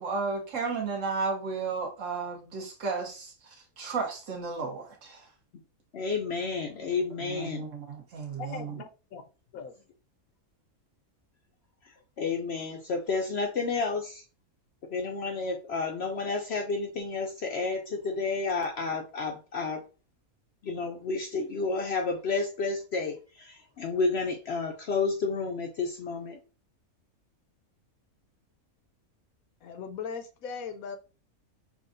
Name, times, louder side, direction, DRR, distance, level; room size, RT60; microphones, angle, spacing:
voice 1, 0.0-3.3 3.8-5.3 7.2-8.7, right 4 dB, 60° right, 1.4 m, -33 dB
voice 2, 5.9-7.7 12.2-14.2 14.9-19.8 20.6-26.4, left 4 dB, 60° left, 0.7 m, -31 dB
voice 3, 8.4-9.2 9.5-9.8 29.6-31.0, left 6 dB, 80° left, 1.1 m, -39 dB
6.0 x 2.3 x 2.6 m
omnidirectional pair, 1.5 m